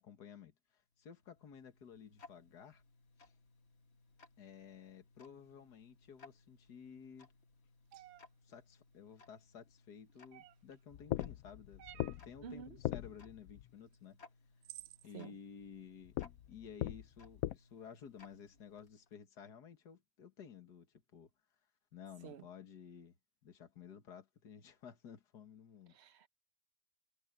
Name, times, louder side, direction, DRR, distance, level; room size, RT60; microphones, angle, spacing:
voice 1, 0.0-2.8 3.2-3.3 4.4-7.3 8.4-14.2 15.0-16.2 16.5-21.3 21.9-23.2 23.4-26.0, left 7 dB, 60° left, 2.3 m, -54 dB
Tick-tock, 0.9-19.2, left 3 dB, 40° left, 1.5 m, -64 dB
sound 1, 7.9-8.2 10.3-10.7 11.8-12.2 13.9-14.0 14.6-15.0, right 15 dB, 70° right, 1.0 m, -53 dB
sound 2, 10.9-13.7 16.1-17.6, left 14 dB, 75° left, 0.8 m, -41 dB
voice 2, 12.4-12.8 15.1-15.4 22.2-22.5 25.9-26.3, right 7 dB, 50° right, 0.8 m, -50 dB
omnidirectional pair, 2.0 m